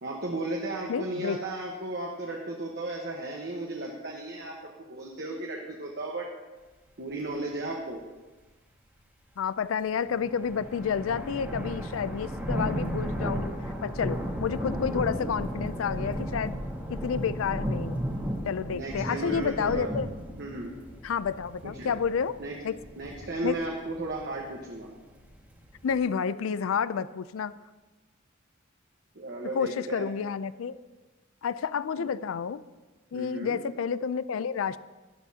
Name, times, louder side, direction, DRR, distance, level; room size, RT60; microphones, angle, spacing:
voice 1, 0.0-6.3 7.0-8.0 18.7-19.9 20.4-20.7 21.6-21.9 22.4-22.6 23.0-24.9 29.1-30.1 32.0-32.1 33.1-33.6, right 2 dB, 55° right, -1 dB, 1.2 m, -35 dB
voice 2, 0.9-1.4 9.4-13.5 13.8-16.5 16.9-18.0 18.4-20.1 21.0-22.4 22.6-22.8 23.4-23.6 25.8-27.5 29.4-30.8 31.4-32.6 33.1-34.8, left 6 dB, 75° left, 16 dB, 0.4 m, -30 dB
sound 1, 10.0-26.0, equal, 10° right, 1.6 m, -34 dB
13.0 x 11.5 x 2.8 m, 1.2 s
head